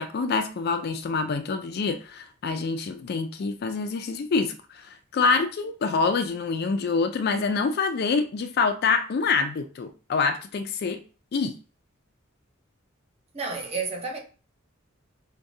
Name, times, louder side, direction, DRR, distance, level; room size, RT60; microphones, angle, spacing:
voice 1, 0.0-11.0 11.3-11.5, left 4 dB, 50° left, 0.4 m, -26 dB
voice 2, 13.3-14.2, right 4 dB, 30° right, 0.7 m, -31 dB
4.7 x 2.2 x 2.6 m
head